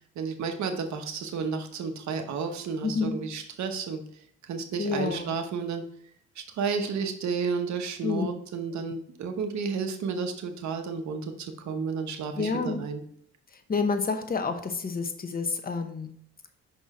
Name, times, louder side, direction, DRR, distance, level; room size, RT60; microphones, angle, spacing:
voice 1, 0.2-4.0 4.4-5.8 6.5-13.0, right 5 dB, 65° right, 5 dB, 1.1 m, -32 dB
voice 2, 2.8-3.1 4.8-5.3 8.0-8.3 12.4-12.8 13.7-16.1, left 4 dB, 30° left, 7 dB, 0.9 m, -29 dB
5.5 x 4.3 x 4.8 m, 0.64 s
cardioid pair, 90°, 30 cm